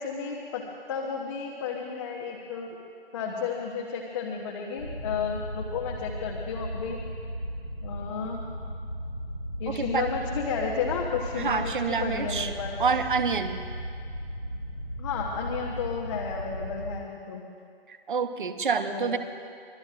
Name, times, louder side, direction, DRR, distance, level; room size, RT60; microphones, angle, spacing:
voice 1, 0.0-2.8 3.1-7.0 7.8-8.4 9.6-12.8 15.0-17.4 18.9-19.1, left 6 dB, 30° left, -2 dB, 1.2 m, -32 dB
sound 1, 4.8-16.9, equal, 85° left, 2.6 m, -36 dB
voice 2, 9.7-10.0 11.4-12.5 12.8-13.6 17.9-19.2, right 5 dB, 55° right, 8 dB, 1.2 m, -27 dB
25.5 x 21.0 x 2.6 m, 2.3 s
figure-of-eight pair, 135°, 31 cm